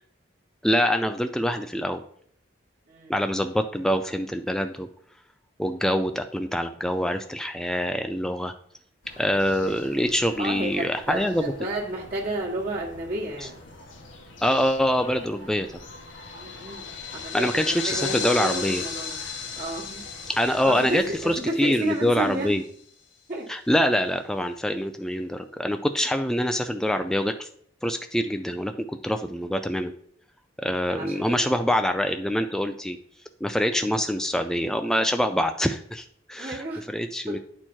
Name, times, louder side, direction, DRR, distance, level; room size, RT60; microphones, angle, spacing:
voice 1, 0.6-2.0 3.1-4.9 5.6-8.5 9.2-11.5 13.4-13.5 14.4-15.7 17.3-18.8 20.3-22.6 23.5-27.5 27.8-29.9 30.6-33.0 33.4-37.4, equal, 5° left, 7 dB, 0.3 m, -25 dB
voice 2, 2.9-3.2 9.6-10.1 10.4-13.5 16.3-19.2 19.6-20.0 20.4-22.5 23.3-23.5 30.9-31.6 33.6-34.0 36.4-36.8 37.3-37.4, right 2 dB, 40° right, -8 dB, 1.4 m, -32 dB
sound 1, 9.0-21.4, left 2 dB, 90° left, 1.7 m, -46 dB
sound 2, 15.8-22.7, left 6 dB, 70° left, 1.4 m, -35 dB
9.9 x 4.5 x 4.4 m, 0.62 s
head